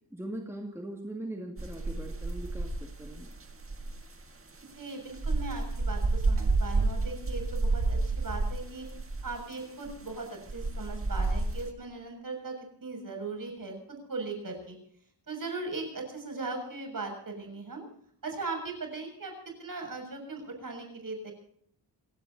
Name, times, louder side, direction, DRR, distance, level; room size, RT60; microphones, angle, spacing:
voice 1, 0.1-3.3, right 1 dB, 5° right, 1 dB, 2.1 m, -40 dB
sound 1, 1.6-4.0 5.2-9.3 9.9-10.1 10.5-11.7, right 3 dB, 30° right, 1.6 m, -30 dB
voice 2, 4.8-8.9 9.2-14.8 15.3-17.8 18.2-19.3 19.6-21.3, right 3 dB, 45° right, 3 dB, 6.9 m, -38 dB
27.5 x 17.0 x 2.8 m, 0.65 s
wide cardioid pair, 150°, 45 cm